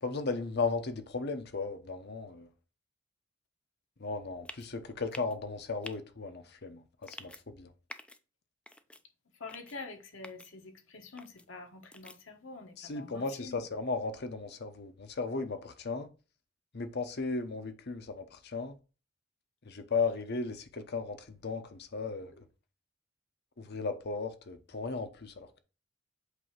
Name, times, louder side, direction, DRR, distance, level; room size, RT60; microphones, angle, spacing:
voice 1, 0.0-2.5 4.0-7.7 12.8-16.1 16.7-18.7 19.6-22.3 23.6-25.6, left 4 dB, 55° left, 0.9 m, -36 dB
sound 1, 4.5-4.7 5.1-5.4 5.8-6.0 7.0-7.4 7.9-8.2 8.7-9.0 9.5-9.8 10.2-10.5 11.2-11.4 11.9-12.2, left 1 dB, 5° left, 0.5 m, -47 dB
voice 2, 9.4-13.6, left 3 dB, 75° left, 1.3 m, -46 dB
8.1 x 2.8 x 5.7 m
head